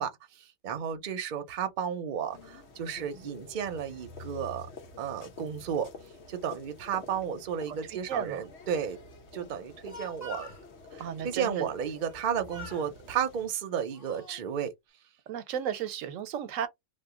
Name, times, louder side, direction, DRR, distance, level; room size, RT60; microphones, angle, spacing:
voice 1, 0.0-4.7 5.0-5.9 6.3-9.0 9.3-10.5 10.9-14.7, right 8 dB, 50° right, 0.6 m, -33 dB
sound 1, 2.3-13.5, left 3 dB, 60° left, 1.1 m, -49 dB
voice 2, 7.7-8.4 11.0-11.7 15.3-16.7, right 8 dB, 90° right, 1.0 m, -34 dB
Speech, 9.6-10.6 12.0-12.2 12.5-12.9 13.6-14.4, left 3 dB, 15° left, 1.0 m, -45 dB
2.9 x 2.1 x 3.6 m
omnidirectional pair, 1.3 m